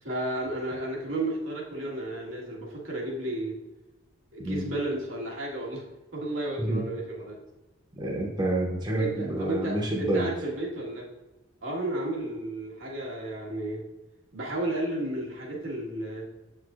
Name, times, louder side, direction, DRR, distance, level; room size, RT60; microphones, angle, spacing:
voice 1, 0.0-3.6 4.3-5.8 6.1-7.4 9.0-11.1 11.6-13.8 14.3-16.3, right 1 dB, 85° right, -3 dB, 1.7 m, -32 dB
voice 2, 8.0-10.3, right 1 dB, 20° right, -1 dB, 0.8 m, -28 dB
7.6 x 6.3 x 2.5 m, 1.1 s
head